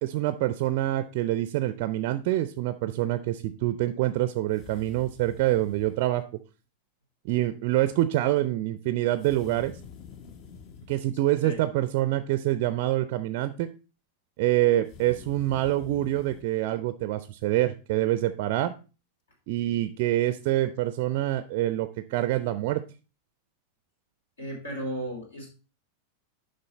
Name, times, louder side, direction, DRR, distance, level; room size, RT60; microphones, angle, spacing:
voice 1, 0.0-6.3 7.2-9.7 10.9-13.7 14.4-18.7 19.5-22.8, right 15 dB, 45° right, 13 dB, 0.4 m, -26 dB
sound 1, 4.5-6.0 9.2-11.0 14.8-16.5, left 6 dB, 40° left, 0.9 m, -47 dB
voice 2, 24.4-25.5, equal, 70° left, 0 dB, 3.3 m, -35 dB
6.9 x 5.4 x 4.0 m, 0.33 s
figure-of-eight pair, 90°, 0 cm